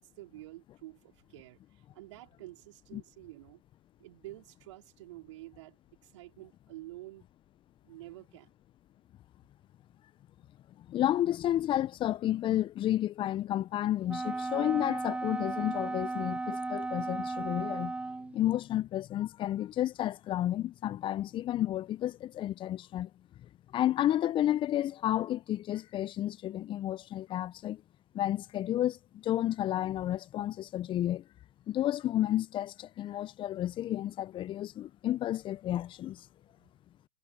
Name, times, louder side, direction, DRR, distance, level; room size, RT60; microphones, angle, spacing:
voice 1, 0.0-3.6 4.0-5.8 6.0-7.2 7.8-8.5, right 17 dB, 65° right, 3.7 m, -49 dB
voice 2, 10.8-17.9 18.3-23.1 23.7-27.8 28.1-31.2 31.7-36.3, left 12 dB, 30° left, 0.7 m, -31 dB
Wind instrument woodwind instrument, 14.1-18.4, right 3 dB, 5° right, 0.8 m, -35 dB
hypercardioid pair, 100°, 16 cm